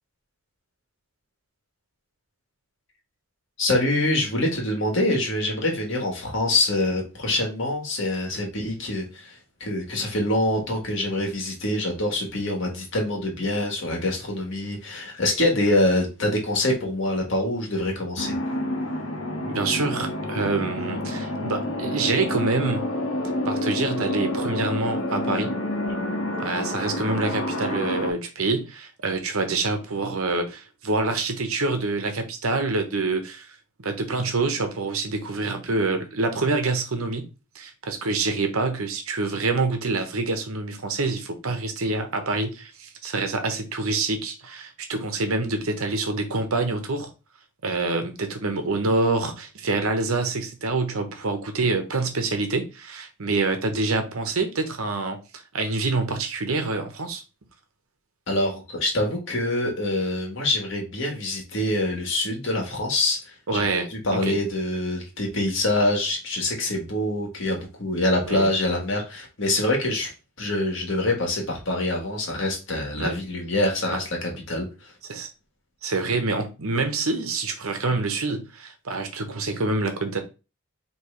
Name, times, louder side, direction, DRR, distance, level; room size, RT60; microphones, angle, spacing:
voice 1, 3.6-18.3 58.3-70.1 70.4-74.9, left 1 dB, 60° left, 1.5 m, -25 dB
sound 1, 18.2-28.1, left 1 dB, 90° left, 1.1 m, -28 dB
voice 2, 19.5-22.9 23.5-25.5 26.4-33.5 33.8-37.3 37.5-47.1 47.6-55.2 55.5-57.2 63.5-64.3 68.3-68.5 73.0-73.2 73.9-74.0 75.1-75.3 75.8-80.2, right 3 dB, 85° right, 1.0 m, -26 dB
4.6 x 3.1 x 3.2 m
head